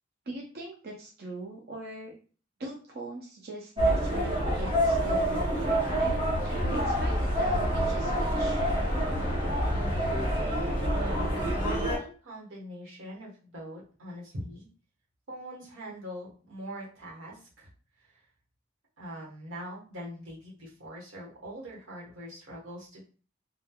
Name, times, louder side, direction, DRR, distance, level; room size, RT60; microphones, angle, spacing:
voice 1, 0.3-2.1 2.6-8.6, right 2 dB, 50° right, -1 dB, 0.5 m, -41 dB
sound 1, 3.8-12.0, equal, 25° right, 1.2 m, -27 dB
voice 2, 10.9-14.7 15.3-17.7 19.0-23.0, equal, 90° right, -3 dB, 1.1 m, -42 dB
3.1 x 2.2 x 2.2 m, 0.38 s
head